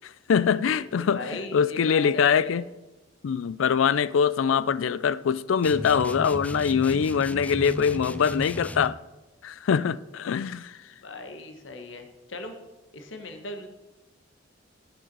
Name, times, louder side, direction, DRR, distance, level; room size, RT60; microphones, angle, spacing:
voice 1, 0.0-2.6 3.2-9.0 9.4-10.8, left 7 dB, 90° left, 0.4 m, -23 dB
voice 2, 0.9-2.6 11.0-12.5 12.9-13.7, left 2 dB, 75° left, 1.3 m, -38 dB
sound 1, 5.6-9.0, left 1 dB, 5° left, 0.3 m, -35 dB
12.0 x 6.0 x 5.4 m
head